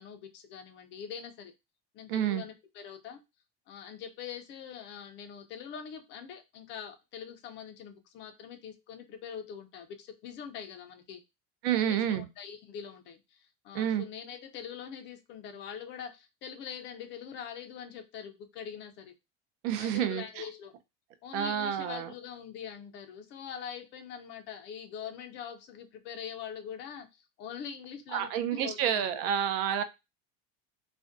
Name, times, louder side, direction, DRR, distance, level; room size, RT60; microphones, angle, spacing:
voice 1, 0.0-1.5 1.9-3.2 3.7-11.2 11.7-19.1 19.8-20.7 21.2-29.2, left 8 dB, 35° left, 7 dB, 0.4 m, -43 dB
voice 2, 2.1-2.4 11.6-12.3 13.7-14.0 19.6-20.4 21.3-22.1 28.1-29.8, right 9 dB, 60° right, 10 dB, 0.5 m, -29 dB
2.5 x 2.1 x 2.4 m, 0.24 s
cardioid pair, 155°, 32 cm